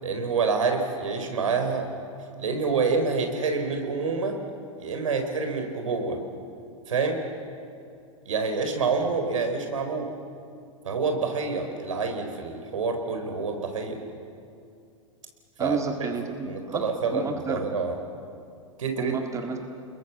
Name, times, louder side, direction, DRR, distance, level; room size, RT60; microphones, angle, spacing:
voice 1, 0.0-1.9 2.4-4.4 4.8-6.2 6.9-7.2 8.3-10.1 10.8-14.0 15.6-16.1 16.5-18.0 18.8-19.2, right 4 dB, 75° right, 5 dB, 4.4 m, -27 dB
voice 2, 15.6-17.7 19.0-19.8, right 4 dB, 20° right, 4 dB, 2.1 m, -32 dB
29.5 x 21.5 x 7.3 m, 2.5 s
hypercardioid pair, 105°, 17 cm